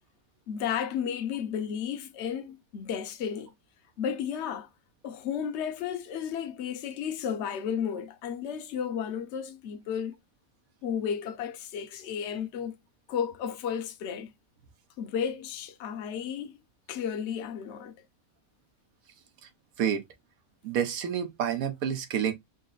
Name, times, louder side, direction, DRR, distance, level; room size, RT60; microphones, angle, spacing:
voice 1, 0.5-3.5 4.0-4.7 5.0-10.1 10.8-12.8 13.1-14.3 15.0-16.6 16.9-17.9, left 8 dB, 60° left, 0.9 m, -33 dB
voice 2, 20.6-22.3, right 8 dB, 90° right, 1.2 m, -28 dB
4.0 x 2.1 x 3.8 m
omnidirectional pair, 1.4 m